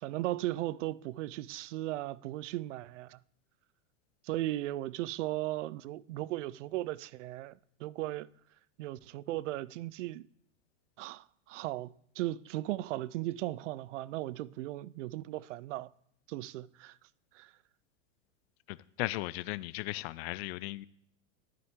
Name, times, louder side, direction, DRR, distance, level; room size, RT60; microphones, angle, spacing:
voice 1, 0.0-3.2 4.2-8.3 8.8-10.3 11.0-15.9 16.3-17.0 17.3-17.5, right 16 dB, 80° right, 0.5 m, -37 dB
voice 2, 18.7-20.9, left 18 dB, 60° left, 0.5 m, -36 dB
11.0 x 9.7 x 3.7 m
supercardioid pair, 145°, 36 cm